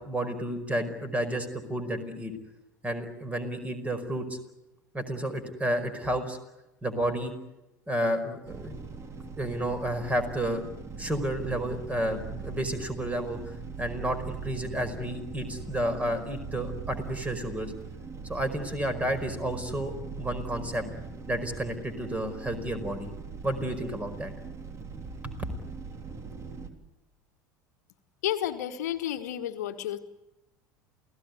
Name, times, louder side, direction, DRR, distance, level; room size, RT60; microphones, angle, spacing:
voice 1, 0.0-2.3 2.8-4.3 4.9-6.4 6.8-7.3 7.9-8.8 9.4-10.6 11.0-13.4 13.8-17.7 18.3-20.8 21.3-23.1 23.4-24.3, right 1 dB, 15° right, 10 dB, 5.1 m, -31 dB
sound 1, 8.5-26.7, right 5 dB, 30° right, 3.6 m, -41 dB
voice 2, 28.2-30.0, left 11 dB, 65° left, 8 dB, 1.5 m, -31 dB
29.0 x 17.5 x 9.6 m, 0.98 s
figure-of-eight pair, 75°, 10 cm